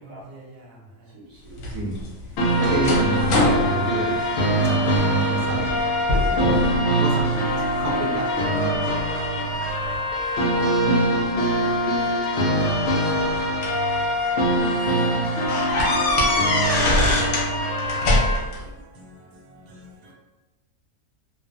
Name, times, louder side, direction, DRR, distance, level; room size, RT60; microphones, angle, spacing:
voice 1, 0.0-1.2 13.7-20.1, right 1 dB, 90° right, 1.2 m, -48 dB
voice 2, 1.1-1.7 5.2-5.8 6.1-7.1, right 2 dB, 35° right, 0.9 m, -41 dB
sound 1, 1.6-5.0 5.4-5.8 6.1-6.8 7.2-7.9 8.5-10.0 11.1-11.2 12.4-13.9 14.4-14.5 14.8-14.9 15.5-17.5 17.8-18.6, left 1 dB, 65° left, 0.8 m, -24 dB
sound 2, 2.4-18.4, equal, 85° left, 0.5 m, -23 dB
voice 3, 2.6-5.6 7.0-8.7, right 1 dB, 70° right, 1.0 m, -29 dB
2.4 x 2.3 x 2.4 m
omnidirectional pair, 1.6 m